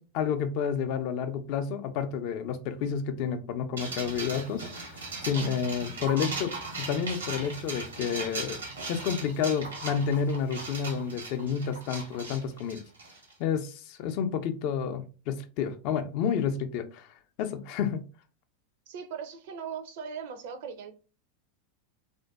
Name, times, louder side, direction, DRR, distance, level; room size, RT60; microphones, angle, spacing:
voice 1, 0.0-8.6 8.9-12.8 13.4-17.1 17.4-18.0, left 7 dB, 55° left, 9 dB, 0.4 m, -30 dB
sound 1, 3.8-13.3, right 3 dB, 90° right, 1.0 m, -38 dB
voice 2, 18.9-20.9, right 7 dB, 65° right, 8 dB, 0.5 m, -39 dB
2.5 x 2.2 x 2.3 m, 0.34 s
hypercardioid pair, 95°, 0 cm